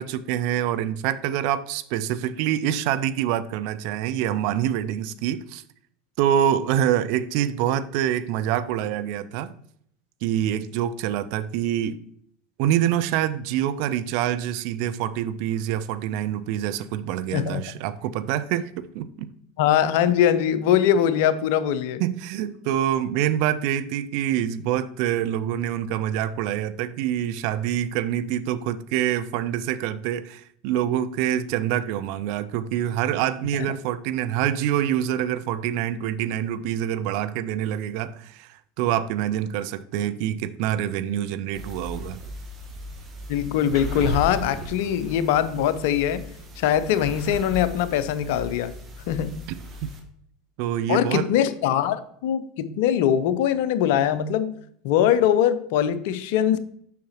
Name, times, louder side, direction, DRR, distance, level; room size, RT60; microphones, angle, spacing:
voice 1, 0.0-5.6 6.2-9.5 10.2-12.0 12.6-19.3 22.0-42.2 49.8-49.9 50.6-51.3, right 11 dB, 55° right, 13 dB, 0.4 m, -26 dB
voice 2, 19.6-22.0 43.3-46.2 46.6-48.7 49.1-49.3 50.9-54.5 54.8-56.6, left 10 dB, 60° left, 14 dB, 0.5 m, -22 dB
sound 1, 41.5-50.0, equal, 30° right, 1.5 m, -36 dB
7.1 x 5.8 x 3.0 m, 0.67 s
figure-of-eight pair, 80°, 0 cm